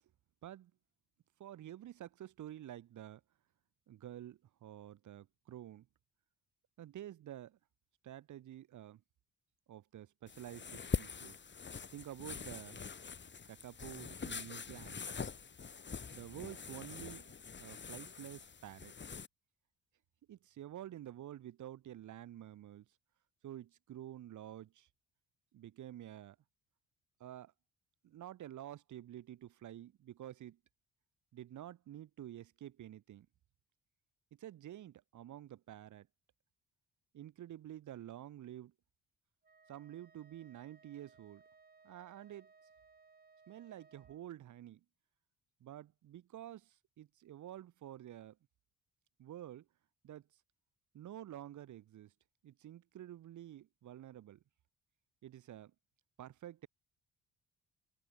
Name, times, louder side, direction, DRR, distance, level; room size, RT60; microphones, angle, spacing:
voice 1, 1.4-3.2 3.9-5.9 6.8-7.6 8.0-9.0 9.7-11.4 11.9-12.8 13.4-15.0 16.1-17.3 17.6-18.9 20.3-22.8 23.4-24.9 25.5-26.4 27.2-27.5 28.0-30.6 31.3-33.3 34.4-36.1 37.1-38.7 39.7-41.4 41.8-42.5 43.5-44.8 45.6-48.4 49.2-49.7 50.0-50.3 50.9-52.1 52.4-54.4 55.2-55.7 56.2-56.7, right 12 dB, 75° right, 6.5 m, -50 dB
sound 1, 10.3-19.3, left 5 dB, 35° left, 3.9 m, -44 dB
Wind instrument woodwind instrument, 39.4-44.3, right 4 dB, 30° right, 5.0 m, -65 dB
cardioid pair, 90°, 30 cm